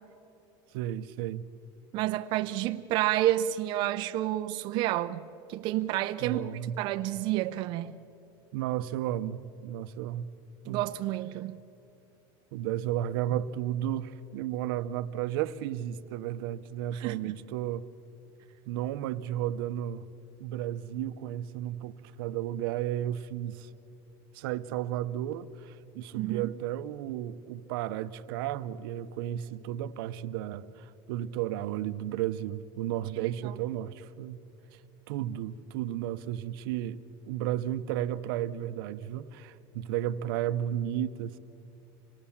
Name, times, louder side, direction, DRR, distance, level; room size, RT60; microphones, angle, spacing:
voice 1, 0.7-1.5 6.2-6.8 8.5-10.3 10.7-10.8 12.5-17.9 18.7-20.0 20.4-23.7 24.3-34.4 34.7-34.8 35.1-37.0 37.3-41.4, right 11 dB, 80° right, 0.8 m, -33 dB
voice 2, 1.9-5.2 5.5-6.4 6.8-7.9 10.7-11.6 16.9-17.4 26.1-26.5 33.2-33.3, right 14 dB, 40° right, 0.5 m, -29 dB
26.0 x 18.5 x 7.2 m
cardioid pair, 170°, 12 cm